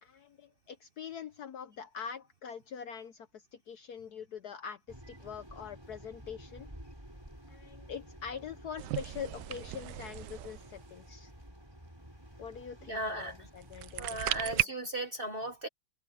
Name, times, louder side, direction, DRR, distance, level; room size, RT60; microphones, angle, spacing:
voice 1, 0.0-4.8 5.1-6.7 7.5-11.3 12.4-14.7, left 7 dB, 60° left, 1.1 m, -44 dB
sound 1, 4.9-14.5, equal, 10° right, 7.4 m, -52 dB
sound 2, 8.8-10.9 13.6-14.6, right 14 dB, 70° right, 1.1 m, -35 dB
voice 2, 12.9-13.4 14.0-15.7, right 1 dB, 35° right, 1.0 m, -36 dB
omnidirectional pair, 2.3 m